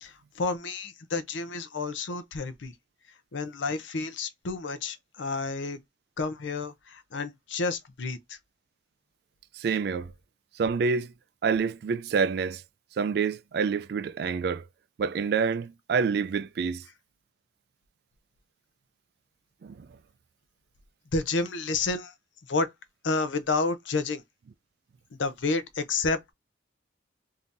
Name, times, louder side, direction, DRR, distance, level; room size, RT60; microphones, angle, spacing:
voice 1, 0.0-2.7 3.3-5.8 6.2-8.4 21.1-22.1 22.5-22.7 23.0-24.2 25.2-26.3, left 3 dB, 80° left, 0.6 m, -30 dB
voice 2, 9.6-10.1 10.6-11.1 11.4-12.6 13.0-14.6 15.0-16.8 19.6-19.9, right 5 dB, 55° right, 0.3 m, -27 dB
3.6 x 2.7 x 2.5 m
head